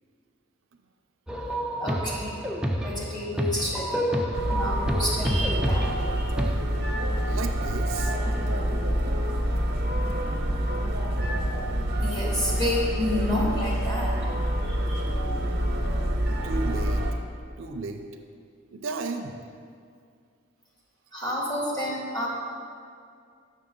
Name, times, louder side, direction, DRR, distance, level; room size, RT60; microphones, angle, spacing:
sound 1, 1.3-6.5, equal, 5° right, 0.4 m, -29 dB
voice 1, 1.8-2.4 2.8-4.0 4.5-6.3 12.0-14.2 14.6-15.0 21.1-22.3, left 1 dB, 20° left, -5 dB, 1.7 m, -30 dB
sound 2, 4.3-17.1, equal, 55° right, 0.9 m, -27 dB
voice 2, 7.3-8.2 16.4-17.1 17.6-18.1 18.7-19.4, right 3 dB, 80° right, 5 dB, 0.5 m, -34 dB
7.3 x 6.5 x 3.8 m, 2.2 s
head